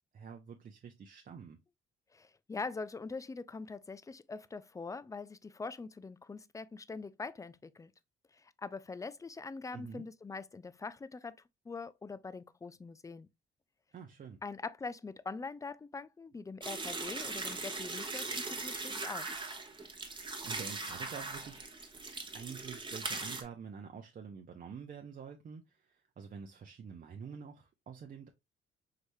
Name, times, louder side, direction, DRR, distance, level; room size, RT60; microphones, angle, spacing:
voice 1, 0.1-1.6 9.7-10.0 13.9-14.4 20.1-21.7 22.3-28.3, right 6 dB, 45° right, 0.7 m, -47 dB
voice 2, 2.1-7.9 8.3-11.4 11.7-13.3 14.4-19.3, left 4 dB, 15° left, 0.4 m, -43 dB
sound 1, 16.6-23.4, right 3 dB, 25° right, 0.9 m, -40 dB
4.9 x 3.2 x 2.6 m
cardioid pair, 90°, 20 cm